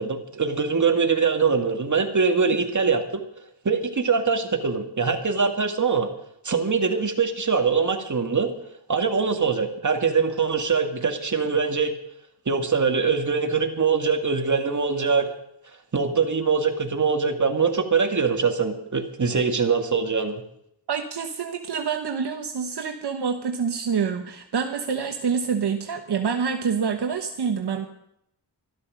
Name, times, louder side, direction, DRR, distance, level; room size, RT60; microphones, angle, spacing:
voice 1, 0.0-3.2 3.6-6.1 6.4-8.5 8.9-11.9 12.5-15.3 15.9-20.4, right 5 dB, 45° right, 4 dB, 2.2 m, -23 dB
voice 2, 20.9-27.9, right 6 dB, 70° right, 5 dB, 1.2 m, -27 dB
13.0 x 13.0 x 6.5 m, 0.77 s
cardioid pair, 70°, 42 cm